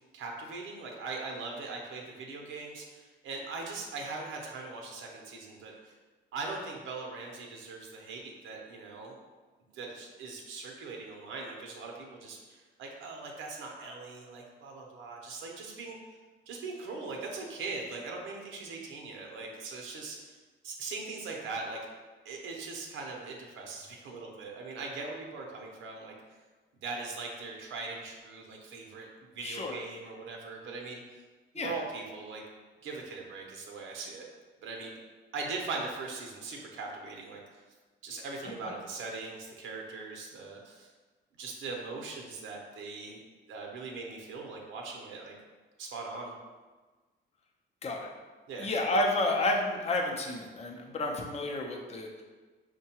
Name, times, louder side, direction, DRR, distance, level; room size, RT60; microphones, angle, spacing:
voice 1, 0.1-6.0 6.3-9.2 9.7-16.0 16.5-20.3 20.6-21.8 22.2-26.1 26.8-29.1 29.3-31.2 31.5-32.4 32.8-34.3 34.6-35.0 35.3-37.6 38.0-40.9 41.4-43.2 43.5-45.4 45.8-46.3 48.5-48.7, right 3 dB, 85° right, 0 dB, 0.6 m, -40 dB
voice 2, 29.4-29.8 31.5-31.7 47.8-48.1 48.6-52.1, left 2 dB, 35° left, 1 dB, 0.5 m, -30 dB
4.6 x 2.2 x 2.8 m, 1.3 s
cardioid pair, 90°, 20 cm